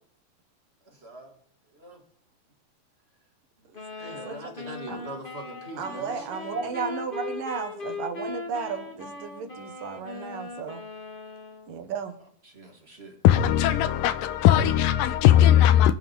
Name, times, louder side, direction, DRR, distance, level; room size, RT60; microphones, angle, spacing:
voice 1, 0.9-1.3 1.7-2.0 4.0-6.8 12.4-13.2, right 1 dB, 20° right, 1.9 m, -42 dB
sound 1, 3.7-11.7, left 3 dB, 25° left, 1.0 m, -39 dB
voice 2, 3.7-4.4 4.9-5.0 5.8-10.8 11.7-12.2, right 6 dB, 70° right, 3.2 m, -34 dB
voice 3, 13.2-15.9, left 11 dB, 80° left, 2.4 m, -18 dB
25.5 x 9.4 x 3.7 m
omnidirectional pair, 4.1 m